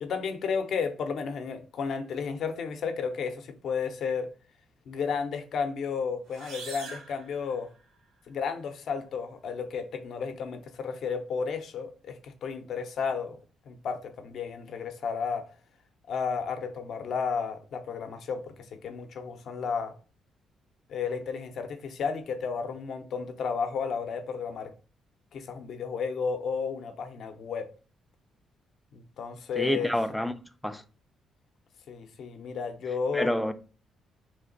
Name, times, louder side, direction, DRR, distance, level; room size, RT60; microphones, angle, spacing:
voice 1, 0.0-4.3 4.9-7.7 8.3-13.4 13.6-15.4 16.1-19.9 20.9-24.7 25.3-27.7 28.9-29.9 31.9-33.3, left 5 dB, 65° left, 0.6 m, -33 dB
sound 1, 6.2-8.1, right 3 dB, 80° right, 1.1 m, -44 dB
voice 2, 29.6-30.3 30.6-30.8 33.1-33.5, left 1 dB, 5° left, 0.4 m, -27 dB
3.4 x 2.8 x 3.9 m
cardioid pair, 90°, 0 cm